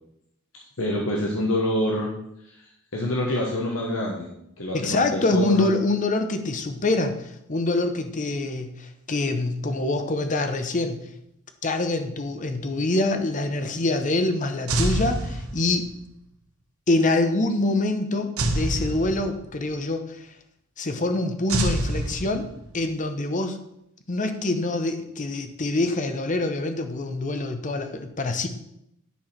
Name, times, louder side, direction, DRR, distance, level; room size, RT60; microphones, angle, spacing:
voice 1, 0.8-2.1 2.5-2.6 2.9-4.3 4.6-5.7, left 1 dB, 65° left, -1 dB, 1.1 m, -26 dB
voice 2, 4.7-11.0 11.6-15.9 16.9-20.2 20.8-22.5 22.7-23.6 24.1-28.5, left 2 dB, 35° left, 7 dB, 0.8 m, -25 dB
sound 1, 14.7-15.9 18.4-19.6 21.5-22.8, right 1 dB, 80° right, 1.1 m, -26 dB
10.0 x 4.7 x 4.4 m, 0.78 s
head